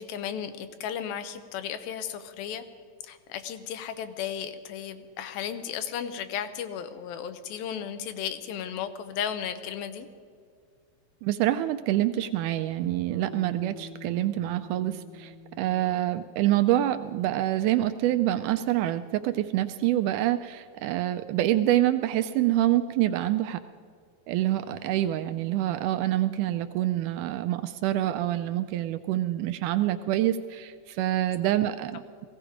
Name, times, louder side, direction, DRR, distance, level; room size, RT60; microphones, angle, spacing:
voice 1, 0.0-2.6 3.0-10.1, left 8 dB, 90° left, 9 dB, 2.7 m, -34 dB
voice 2, 11.2-23.6 24.3-32.3, right 13 dB, 85° right, 9 dB, 1.8 m, -26 dB
Bass guitar, 13.1-17.5, left 2 dB, 70° left, 1.0 m, -47 dB
17.5 x 16.0 x 5.0 m, 2.2 s
omnidirectional pair, 4.1 m